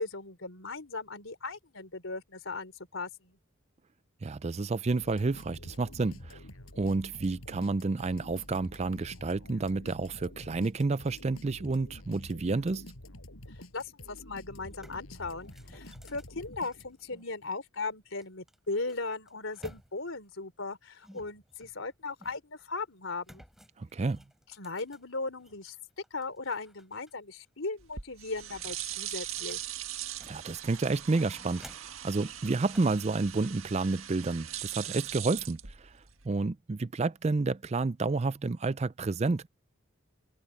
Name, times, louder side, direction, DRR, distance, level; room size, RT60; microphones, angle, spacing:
voice 1, 0.0-3.4 13.7-23.4 24.6-25.8 26.1-29.7, left 3 dB, 70° left, 3.6 m, -38 dB
voice 2, 4.2-6.4 6.8-12.9 23.8-24.2 30.2-35.9 36.2-39.5, right 3 dB, 30° right, 0.4 m, -30 dB
sound 1, 5.0-17.2, left 1 dB, 90° left, 5.9 m, -48 dB
sound 2, 14.2-14.3 14.6-17.3 18.2-20.2 21.0-22.6 23.2-25.6 26.0-27.1 27.4-27.5 27.9-30.5 30.9-32.1 32.7-33.1, equal, ahead, 4.7 m, -55 dB
sound 3, 27.8-36.3, right 11 dB, 80° right, 1.8 m, -40 dB
head